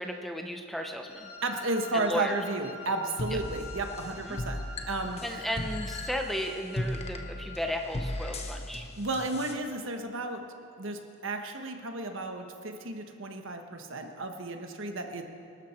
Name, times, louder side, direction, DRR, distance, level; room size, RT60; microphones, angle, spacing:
voice 1, 0.0-1.3 1.9-2.4 3.3-3.4 4.2-4.4 5.2-8.9, left 1 dB, ahead, 3 dB, 0.8 m, -34 dB
Wind instrument woodwind instrument, 1.0-7.7, left 3 dB, 80° left, 3.4 m, -46 dB
voice 2, 1.4-4.6 4.9-5.2 9.0-10.4 10.8-15.2, right 2 dB, 65° right, 5 dB, 1.3 m, -33 dB
sound 1, 3.2-9.5, left 1 dB, 30° left, 1.1 m, -37 dB
25.0 x 12.5 x 4.4 m, 2.5 s
head